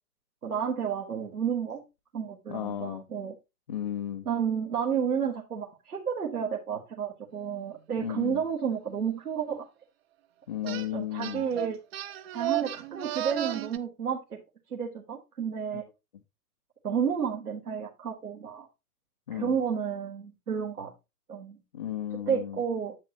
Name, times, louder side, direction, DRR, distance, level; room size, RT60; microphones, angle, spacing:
voice 1, 0.4-1.8 2.1-3.3 4.2-9.7 10.6-11.8 12.3-14.4 14.7-15.8 16.8-18.7 19.3-20.9 21.3-21.6 22.3-23.0, right 7 dB, 75° right, 1.7 m, -31 dB
voice 2, 2.5-3.0 3.7-4.3 8.0-8.4 10.5-11.4 19.3-19.6 21.7-22.6, left 11 dB, 30° left, 0.4 m, -34 dB
sound 1, 10.7-10.9 11.2-13.8, right 14 dB, 40° right, 0.6 m, -33 dB
8.5 x 7.5 x 2.9 m
figure-of-eight pair, 110°, 46 cm